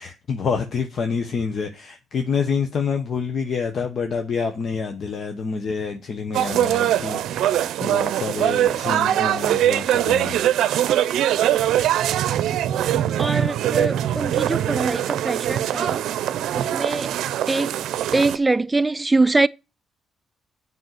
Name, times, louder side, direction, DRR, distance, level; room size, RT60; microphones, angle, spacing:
voice 1, 0.0-10.4, left 5 dB, 55° left, 1.1 m, -27 dB
sound 1, 6.3-18.4, right 11 dB, 80° right, 0.6 m, -22 dB
voice 2, 13.2-16.0 16.5-17.1 17.5-17.8 18.1-19.5, right 3 dB, 15° right, 0.5 m, -23 dB
8.1 x 5.5 x 7.8 m
cardioid pair, 90°, 0 cm